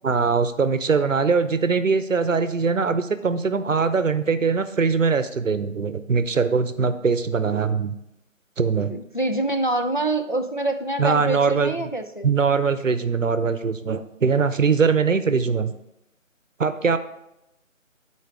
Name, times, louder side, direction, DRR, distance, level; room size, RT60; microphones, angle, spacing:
voice 1, 0.0-8.0 8.6-8.9 11.0-11.9 12.2-15.7 16.6-17.0, right 5 dB, 70° right, 11 dB, 0.8 m, -22 dB
voice 2, 8.9-12.3, right 2 dB, 40° left, 5 dB, 0.5 m, -25 dB
13.0 x 4.5 x 3.6 m, 0.86 s
figure-of-eight pair, 165°, 41 cm